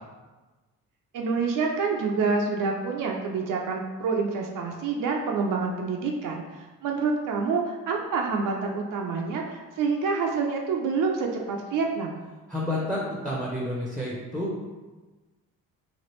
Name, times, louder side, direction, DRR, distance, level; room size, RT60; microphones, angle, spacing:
voice 1, 1.1-12.2, right 4 dB, 55° right, 1 dB, 0.5 m, -27 dB
voice 2, 12.5-14.6, left 1 dB, ahead, -5 dB, 0.7 m, -30 dB
3.1 x 2.4 x 3.0 m, 1.2 s
supercardioid pair, 60°, 38 cm